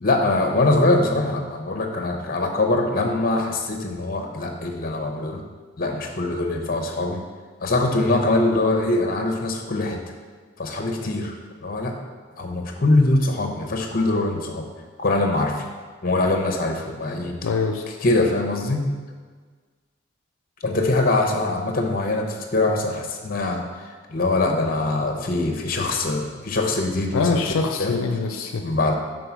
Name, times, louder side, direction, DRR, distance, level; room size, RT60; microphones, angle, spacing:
voice 1, 0.0-5.4 5.8-7.2 7.6-10.0 10.6-11.3 11.6-11.9 12.4-14.6 15.0-15.6 16.0-17.4 18.0-18.8 20.6-27.4 27.8-27.9 28.6-29.0, left 2 dB, 45° left, 3 dB, 0.7 m, -23 dB
voice 2, 17.4-17.9 27.1-28.6, left 4 dB, 80° left, 5 dB, 0.4 m, -24 dB
5.4 x 3.9 x 5.8 m, 1.5 s
head